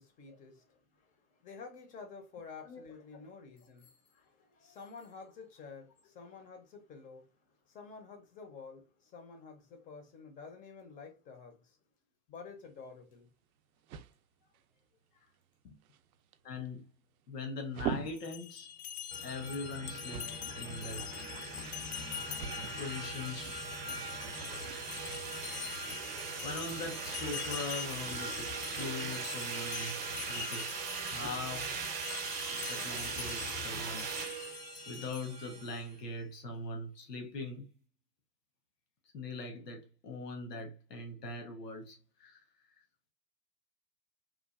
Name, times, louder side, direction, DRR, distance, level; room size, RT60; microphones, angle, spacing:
voice 1, 0.0-11.8 12.3-13.3 15.1-15.3 15.6-15.8, left 5 dB, 20° left, 0.5 m, -51 dB
sound 1, 12.6-26.0, right 8 dB, 65° right, 0.5 m, -47 dB
voice 2, 16.4-16.9 17.3-18.7 19.2-21.0 22.8-23.7 26.4-28.5 28.8-30.0 30.3-31.7 32.5-34.1 34.5-34.6 34.9-37.7 39.1-42.4, left 3 dB, 90° left, 1.0 m, -41 dB
thai bells, 18.1-35.5, left 10 dB, 70° left, 0.6 m, -45 dB
sound 2, 19.1-35.9, right 4 dB, 20° right, 0.6 m, -40 dB
3.0 x 2.2 x 2.3 m
hypercardioid pair, 110°, 47 cm